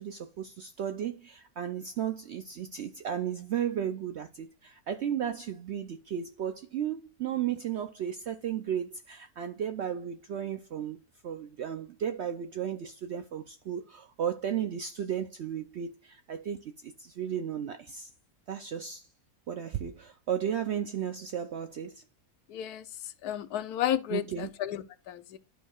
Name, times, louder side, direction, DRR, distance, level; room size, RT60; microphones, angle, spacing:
voice 1, 0.0-18.1 18.5-19.1 19.5-22.0 24.1-24.5, right 9 dB, 70° right, 0.6 m, -34 dB
voice 2, 22.5-25.4, left 11 dB, 75° left, 1.2 m, -33 dB
12.0 x 4.5 x 2.3 m
omnidirectional pair, 1.7 m